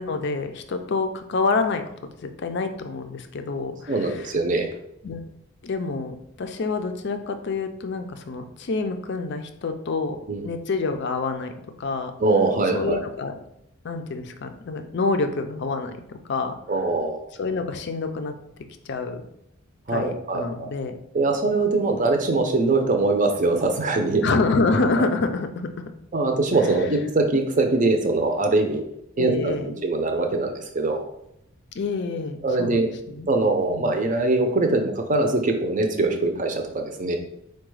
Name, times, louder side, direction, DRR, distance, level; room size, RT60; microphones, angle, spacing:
voice 1, 0.0-1.9 2.2-4.3 5.0-5.2 5.6-10.2 10.4-11.5 11.8-12.1 12.7-13.4 13.8-16.5 17.4-18.4 18.9-19.3 19.9-21.0 24.2-25.7 29.2-29.8 31.7-33.3 33.7-33.9, left 3 dB, 50° left, 7 dB, 0.4 m, -27 dB
voice 2, 3.9-4.7 10.3-10.5 12.2-13.0 16.7-17.2 19.9-20.4 21.1-24.2 26.1-28.8 29.2-31.1 32.4-32.9 33.3-37.2, right 2 dB, 35° right, 4 dB, 0.6 m, -22 dB
4.7 x 2.3 x 4.7 m, 0.79 s
head